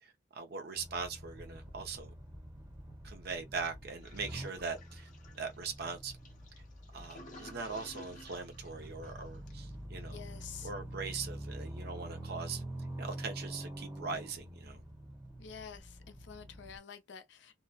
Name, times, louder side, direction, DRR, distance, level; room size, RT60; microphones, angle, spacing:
voice 1, 0.0-2.1 3.0-5.1 5.4-6.1 6.9-10.2 10.6-12.6 13.0-14.8, right 4 dB, 55° right, 0.5 m, -41 dB
sound 1, 0.7-16.8, right 1 dB, 20° right, 0.9 m, -46 dB
Toilet flush, 4.0-9.7, left 1 dB, 45° left, 0.9 m, -54 dB
voice 2, 10.1-10.7 15.4-17.6, left 7 dB, 65° left, 0.5 m, -49 dB
2.7 x 2.1 x 2.2 m
head